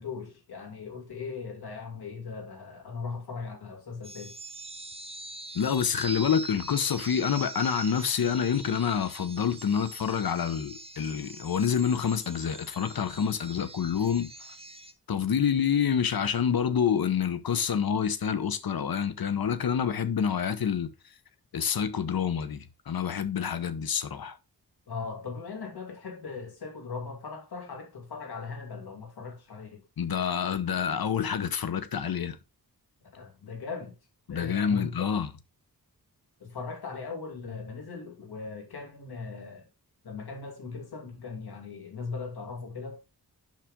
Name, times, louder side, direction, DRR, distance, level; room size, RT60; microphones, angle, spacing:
voice 1, 0.0-4.3 24.9-29.8 33.2-33.9 34.3-35.1 36.4-39.6 40.0-43.0, left 4 dB, 85° left, 2.4 m, -39 dB
sound 1, 4.0-14.9, right 2 dB, 15° right, 1.0 m, -43 dB
voice 2, 5.5-14.3 15.1-20.9 21.5-24.4 30.0-32.4 34.3-35.3, left 7 dB, 70° left, 1.0 m, -27 dB
7.5 x 5.8 x 3.7 m
wide cardioid pair, 80°, 37 cm